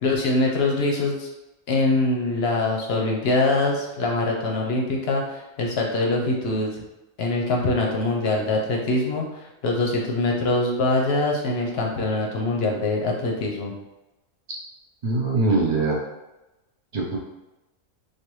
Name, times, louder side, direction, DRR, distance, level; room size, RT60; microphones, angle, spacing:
voice 1, 0.0-1.3 1.7-6.8 7.2-13.7, left 2 dB, 60° left, 0 dB, 0.7 m, -23 dB
voice 2, 15.0-16.0 16.9-17.2, right 3 dB, 75° right, -3 dB, 0.4 m, -22 dB
3.3 x 2.2 x 3.0 m, 0.99 s
omnidirectional pair, 1.5 m